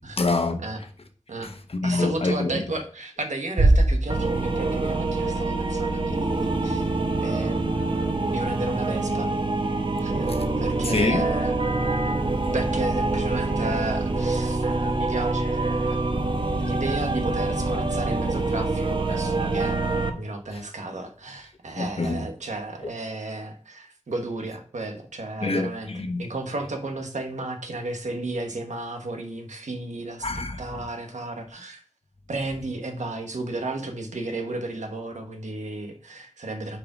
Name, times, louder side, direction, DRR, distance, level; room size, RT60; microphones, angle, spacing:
voice 1, 0.2-0.6 1.4-2.5 10.3-10.4 10.9-11.3 21.7-22.3 25.4-26.3 30.2-30.8, left 3 dB, 55° left, 1.0 m, -26 dB
voice 2, 1.8-9.3 10.0-11.6 12.3-19.8 20.1-25.9 26.2-30.3 30.6-31.8 32.3-36.8, right 2 dB, 85° right, 1.2 m, -33 dB
Bass drum, 3.6-5.3, right 1 dB, 60° right, 1.4 m, -22 dB
sound 1, 4.1-20.1, right 2 dB, 45° right, 1.0 m, -25 dB
5.1 x 4.8 x 5.9 m
wide cardioid pair, 55°, 12 cm